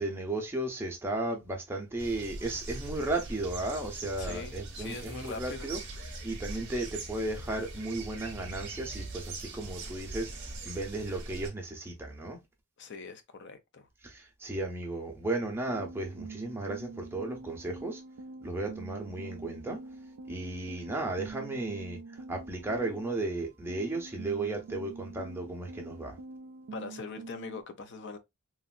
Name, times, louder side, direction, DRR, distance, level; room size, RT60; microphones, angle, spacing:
voice 1, 0.0-5.8 6.2-12.4 14.0-18.0 18.4-19.8 20.3-22.0 22.3-26.2, right 2 dB, 10° right, 0.6 m, -35 dB
sound 1, 2.0-11.5, right 2 dB, 50° right, 0.8 m, -41 dB
voice 2, 4.2-5.7 12.8-13.9 26.7-28.2, left 4 dB, 50° left, 0.5 m, -42 dB
sound 2, 15.7-23.3 23.7-27.6, right 3 dB, 75° right, 0.4 m, -45 dB
3.0 x 2.5 x 2.4 m
head